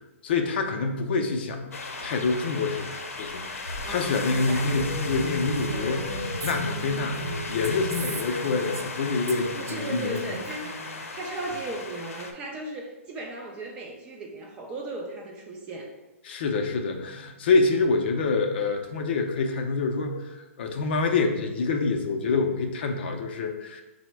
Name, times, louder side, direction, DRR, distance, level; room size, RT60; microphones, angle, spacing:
voice 1, 0.2-7.2 7.5-10.4 16.2-23.8, left 4 dB, 45° left, 4 dB, 0.5 m, -27 dB
sound 1, 1.7-12.3, left 2 dB, 85° left, 0.6 m, -34 dB
voice 2, 3.8-4.7 9.5-10.7 11.1-15.9, right 2 dB, 15° right, 1 dB, 0.3 m, -36 dB
Female speech woman speaking, 5.6-9.0 9.3-11.1, right 4 dB, 90° right, 0.6 m, -40 dB
4.0 x 2.0 x 4.5 m, 1.0 s
hypercardioid pair, 160°, 8 cm